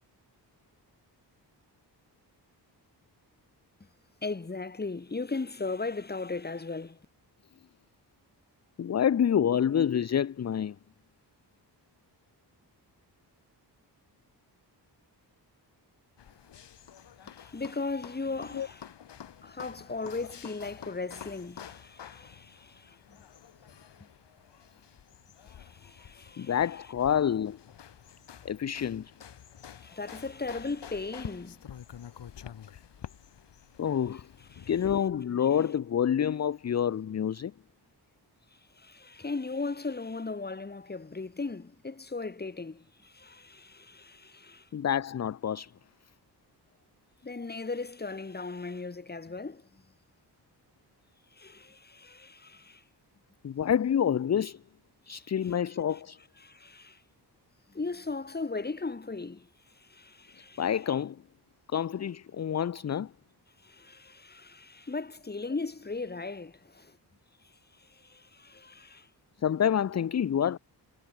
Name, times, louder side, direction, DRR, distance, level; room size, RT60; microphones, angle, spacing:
voice 1, 4.2-7.0 17.4-18.8 19.4-23.0 25.4-26.5 29.8-31.6 34.5-34.7 38.8-44.7 47.2-49.6 51.4-52.8 56.4-57.0 57.7-59.5 59.8-60.6 63.6-67.0 67.9-69.1, left 3 dB, 25° left, 2.2 m, -37 dB
voice 2, 8.8-10.8 18.5-18.7 26.4-27.6 28.4-29.1 33.8-34.3 34.7-37.5 44.7-45.7 53.4-54.6 55.1-56.2 60.4-61.2 61.7-63.1 69.4-70.6, left 8 dB, 40° left, 0.6 m, -28 dB
sound 1, 16.2-34.9, left 9 dB, 80° left, 3.8 m, -49 dB
wide cardioid pair, 115°, 41 cm